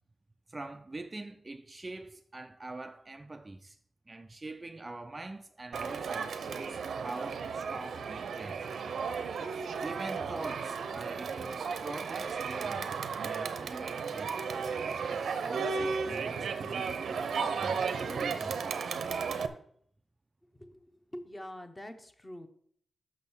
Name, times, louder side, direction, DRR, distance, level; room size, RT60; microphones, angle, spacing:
voice 1, 0.5-3.8 4.1-8.6 9.8-12.9 13.2-14.4 15.1-17.2 17.6-19.0, right 2 dB, 20° right, 0.4 m, -43 dB
Crowd, 5.7-19.5, right 5 dB, 85° right, 0.7 m, -34 dB
voice 2, 21.1-22.5, equal, 15° left, 0.8 m, -44 dB
6.3 x 6.3 x 7.0 m
wide cardioid pair, 160°, 0 cm